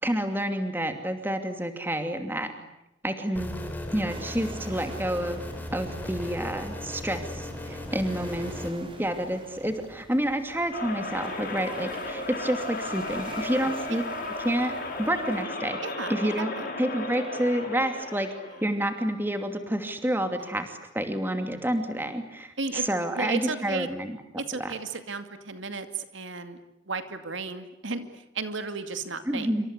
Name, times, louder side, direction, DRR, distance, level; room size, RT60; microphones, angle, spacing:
voice 1, 0.0-2.5 3.0-3.5 3.9-5.4 5.7-14.0 14.4-15.8 16.1-16.5 16.8-18.3 18.6-24.1 24.6-24.7 29.3-29.7, right 1 dB, 10° right, 7 dB, 2.6 m, -29 dB
sound 1, 3.4-8.7, left 1 dB, 10° left, 4.0 m, -37 dB
sound 2, 4.1-15.4, right 1 dB, 25° right, 4.6 m, -46 dB
sound 3, 10.7-18.7, left 2 dB, 45° left, 7.7 m, -35 dB
voice 2, 13.5-14.0 15.8-16.7 20.4-20.5 22.6-22.9 23.2-23.9 24.4-26.6 26.8-29.5, right 4 dB, 75° right, 9 dB, 2.3 m, -34 dB
27.5 x 26.0 x 8.3 m, 0.86 s
head